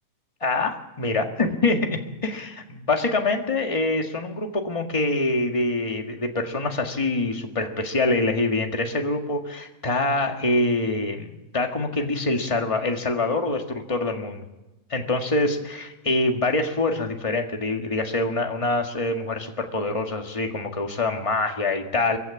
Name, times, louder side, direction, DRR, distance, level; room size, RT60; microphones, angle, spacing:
voice 1, 0.4-14.4 14.9-22.2, left 2 dB, 20° left, 3 dB, 0.9 m, -25 dB
22.0 x 15.5 x 8.5 m, 1.0 s
omnidirectional pair, 3.3 m